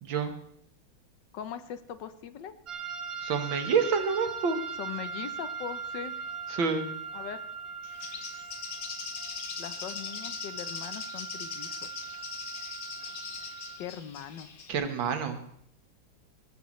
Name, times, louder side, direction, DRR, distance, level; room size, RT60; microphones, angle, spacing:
voice 1, 0.0-0.3 3.2-4.6 6.5-6.9 14.7-15.4, right 5 dB, 80° right, 7 dB, 2.1 m, -28 dB
voice 2, 1.3-2.5 4.8-6.1 7.1-7.4 9.6-12.0 13.8-14.5, left 9 dB, 70° left, 11 dB, 1.4 m, -40 dB
sound 1, 2.7-13.8, right 6 dB, 50° right, 1.6 m, -40 dB
Bird, 7.8-14.7, left 6 dB, 50° left, 1.5 m, -40 dB
19.5 x 15.0 x 3.1 m, 0.68 s
omnidirectional pair, 2.1 m